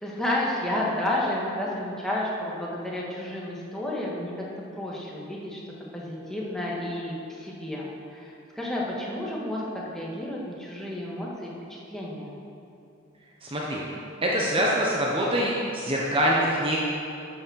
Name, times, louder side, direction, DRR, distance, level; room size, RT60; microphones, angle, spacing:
voice 1, 0.0-4.5 4.8-12.4, left 1 dB, ahead, -5 dB, 1.8 m, -31 dB
voice 2, 13.4-13.8 14.2-16.8, equal, 25° right, -3 dB, 1.1 m, -24 dB
12.5 x 6.5 x 6.5 m, 2.6 s
head